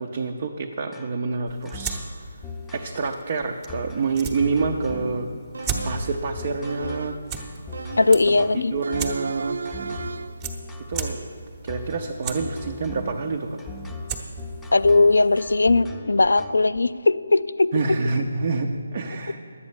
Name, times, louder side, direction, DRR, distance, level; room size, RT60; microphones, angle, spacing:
voice 1, 0.0-2.0 2.7-5.3 5.8-7.2 8.3-10.0 10.9-11.3 11.6-13.6 17.7-19.5, right 4 dB, 40° right, 2 dB, 0.7 m, -27 dB
sound 1, 0.9-16.8, left 2 dB, 5° left, 0.7 m, -39 dB
sound 2, 1.5-15.8, right 5 dB, 20° right, 1.0 m, -38 dB
sound 3, 5.5-6.2 6.6-7.3 7.7-8.4 8.8-10.5, right 4 dB, 70° right, 0.4 m, -35 dB
voice 2, 8.0-8.7 14.7-17.7, left 3 dB, 75° left, 16 dB, 0.4 m, -19 dB
11.0 x 8.4 x 7.1 m, 2.5 s
figure-of-eight pair, 150°, 0 cm